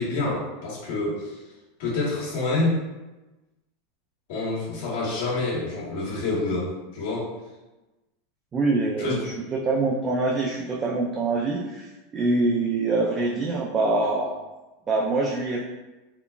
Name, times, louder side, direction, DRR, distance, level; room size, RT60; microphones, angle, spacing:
voice 1, 0.0-1.4 1.8-2.8 4.3-7.3 9.0-9.3, left 2 dB, 75° left, -6 dB, 1.3 m, -27 dB
voice 2, 8.5-14.3 14.9-15.7, right 3 dB, 25° right, -3 dB, 0.3 m, -25 dB
3.7 x 2.2 x 2.3 m, 1.1 s
supercardioid pair, 130°, 0 cm